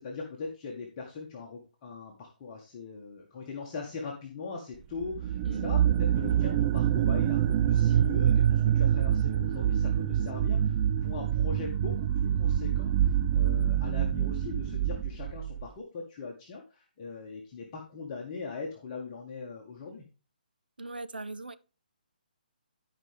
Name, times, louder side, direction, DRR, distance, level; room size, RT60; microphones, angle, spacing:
voice 1, 0.0-20.1, left 4 dB, 30° left, 1.7 m, -41 dB
sound 1, 5.0-15.7, right 10 dB, 25° right, 0.4 m, -26 dB
voice 2, 5.4-5.8 20.8-21.5, right 2 dB, 85° right, 0.7 m, -39 dB
13.5 x 5.1 x 3.5 m
figure-of-eight pair, 140°, 5 cm